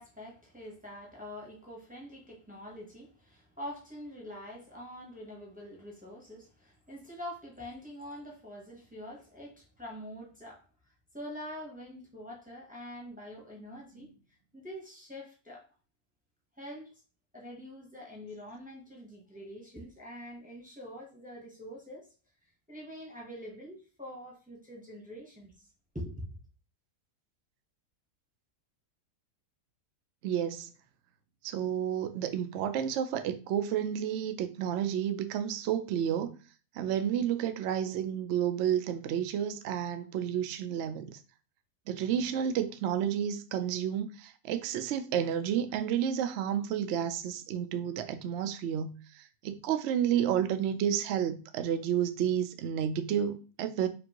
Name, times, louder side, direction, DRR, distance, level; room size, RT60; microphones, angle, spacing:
voice 1, 0.0-10.6 11.1-14.1 14.5-15.6 16.6-16.9 17.3-22.1 22.7-25.5 25.9-26.3, equal, 10° right, 0.6 m, -45 dB
voice 2, 30.2-30.7 31.4-36.4 36.8-41.2 41.9-53.9, right 9 dB, 85° right, 0.6 m, -31 dB
5.1 x 2.5 x 2.9 m
omnidirectional pair, 1.7 m